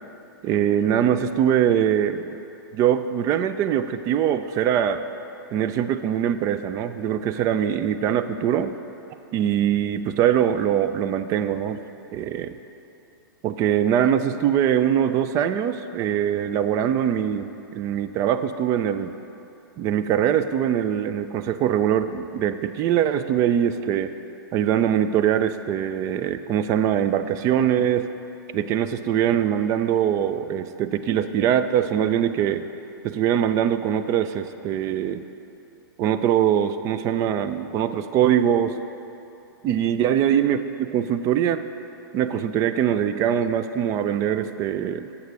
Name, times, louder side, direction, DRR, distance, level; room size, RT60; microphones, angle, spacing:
voice 1, 0.4-2.4 2.7-5.0 5.5-8.7 9.3-11.8 12.1-12.6 13.4-19.1 19.8-24.1 24.5-28.1 28.5-32.6 33.0-35.2 36.0-38.8 39.6-41.6 42.1-45.1, right 9 dB, 25° right, 11 dB, 0.3 m, -22 dB
9.1 x 7.0 x 4.7 m, 2.9 s
hypercardioid pair, 135°, 12 cm